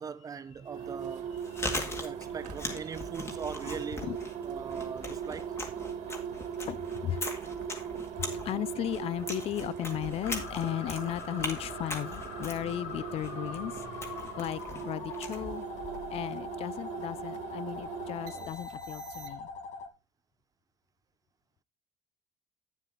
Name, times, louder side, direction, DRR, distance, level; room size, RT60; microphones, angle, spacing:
voice 1, 0.0-1.3 2.0-4.1 4.4-5.5, right 6 dB, 30° right, 0.6 m, -40 dB
sound 1, 0.6-19.6, right 8 dB, 90° right, 1.6 m, -40 dB
Chewing mastication, 1.2-16.3, left 2 dB, 20° left, 1.9 m, -41 dB
voice 2, 5.9-7.4 8.2-15.6 16.1-19.5, left 12 dB, 55° left, 0.4 m, -36 dB
sound 2, 10.2-19.9, left 6 dB, 80° left, 1.3 m, -43 dB
9.2 x 7.0 x 3.9 m
cardioid pair, 125°, 12 cm